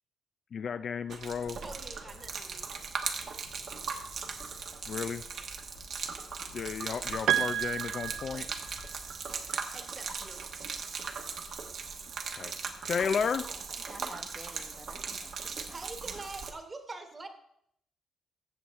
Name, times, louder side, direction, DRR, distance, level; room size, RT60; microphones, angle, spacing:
voice 1, 0.5-1.6 4.9-5.2 6.5-8.5 12.4-12.5 12.8-13.5, left 6 dB, 50° left, 11 dB, 0.4 m, -33 dB
Bus / Traffic noise roadway noise, 1.0-13.5, left 4 dB, 75° left, 2.6 m, -56 dB
Gurgling / Liquid, 1.1-16.5, right 5 dB, 55° right, 1.0 m, -39 dB
voice 2, 1.6-2.6 9.5-10.4 15.7-17.3, right 3 dB, 30° right, 6 dB, 1.3 m, -45 dB
Piano, 7.3-9.0, right 11 dB, 80° right, 0.3 m, -31 dB
voice 3, 13.3-15.9, left 1 dB, 5° left, 7 dB, 1.0 m, -51 dB
14.5 x 7.1 x 3.1 m, 0.72 s
cardioid pair, 110°, 0 cm